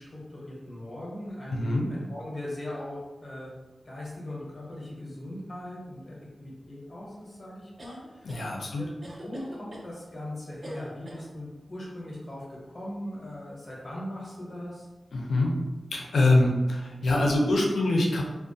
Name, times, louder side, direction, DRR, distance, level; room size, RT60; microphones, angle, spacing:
voice 1, 0.0-3.5 3.8-8.4 8.7-14.9, left 1 dB, 30° left, -5 dB, 0.7 m, -39 dB
voice 2, 1.5-1.9 8.2-8.8 15.1-15.5 15.9-18.2, left 2 dB, 90° left, -1 dB, 0.5 m, -24 dB
sound 1, 7.8-8.5 9.0-9.9 10.6-11.3, right 1 dB, 40° right, 0.4 m, -44 dB
2.3 x 2.1 x 2.6 m, 1.2 s
wide cardioid pair, 130°, 0 cm